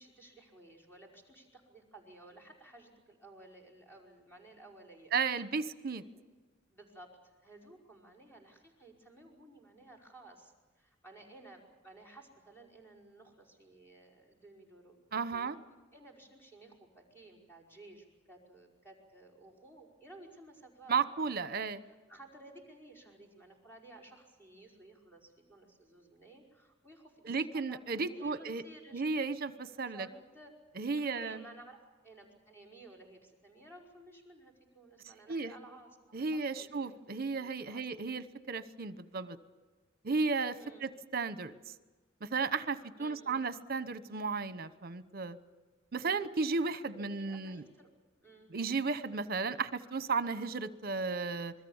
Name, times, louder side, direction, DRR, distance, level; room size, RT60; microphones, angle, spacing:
voice 1, 0.0-5.1 6.1-6.2 6.7-15.0 15.3-15.5 15.9-21.3 22.1-29.0 29.9-30.5 31.0-37.8 40.6-40.9 43.0-43.5 46.9-47.9 48.2-48.5, right 2 dB, 10° left, -1 dB, 5.2 m, -55 dB
voice 2, 5.1-6.0 15.1-15.6 20.9-21.8 27.2-28.6 28.9-30.1 30.8-31.4 35.3-35.5 36.1-39.4 40.0-41.5 42.2-45.4 45.9-47.6 48.5-51.5, right 4 dB, 50° right, 14 dB, 1.0 m, -34 dB
27.0 x 21.0 x 7.2 m, 1.2 s
head